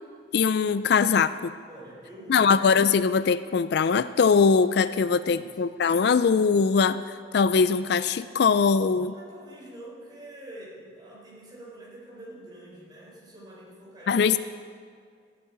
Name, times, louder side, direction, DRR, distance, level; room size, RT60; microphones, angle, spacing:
voice 1, 0.3-1.5 2.3-7.0 7.3-9.1 14.1-14.4, left 5 dB, 55° left, 14 dB, 0.3 m, -21 dB
voice 2, 1.7-2.5 5.1-5.6 9.0-14.3, right 1 dB, 20° right, -5 dB, 4.2 m, -46 dB
13.5 x 8.4 x 9.6 m, 2.1 s
head